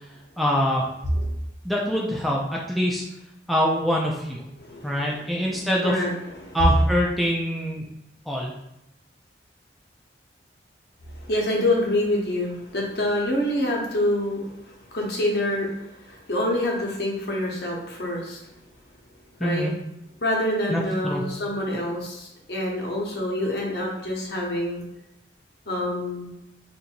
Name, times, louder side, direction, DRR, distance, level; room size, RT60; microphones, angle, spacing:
voice 1, 0.4-0.9 1.6-3.0 3.5-4.4 4.8-5.9 6.5-7.9 8.3-8.5 19.4-19.7 20.7-21.2, equal, ahead, -3 dB, 0.4 m, -24 dB
voice 2, 4.6-6.6 11.1-18.4 19.4-19.7 20.2-24.8 25.7-26.3, left 1 dB, 65° left, -2 dB, 1.0 m, -27 dB
2.7 x 2.6 x 4.3 m, 0.84 s
head